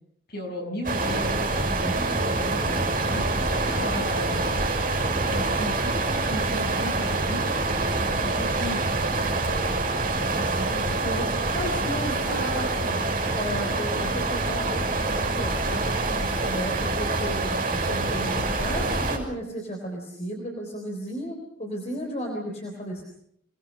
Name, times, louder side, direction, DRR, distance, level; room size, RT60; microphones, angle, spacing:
voice 1, 0.3-1.5 2.8-4.6 5.1-9.1 9.4-9.8, left 1 dB, 50° left, 1 dB, 7.9 m, -36 dB
sound 1, 0.8-19.2, right 2 dB, 45° right, 6.2 m, -26 dB
voice 2, 1.7-2.8 10.6-13.0 13.3-23.0, equal, 35° left, 1 dB, 3.8 m, -34 dB
28.0 x 20.5 x 6.4 m, 0.71 s
head